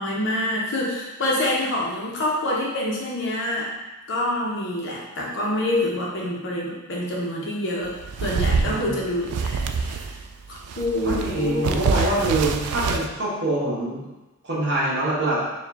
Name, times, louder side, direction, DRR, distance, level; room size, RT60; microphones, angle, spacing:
voice 1, 0.0-3.7 4.1-10.1 10.5-12.3, left 1 dB, 60° left, -4 dB, 1.0 m, -26 dB
sound 1, 7.8-10.2 10.6-13.1, right 5 dB, 80° right, 0.3 m, -26 dB
voice 2, 8.6-9.0 11.0-14.0 14.4-15.4, right 1 dB, 50° right, -7 dB, 1.4 m, -25 dB
4.8 x 2.5 x 3.5 m, 1.1 s
head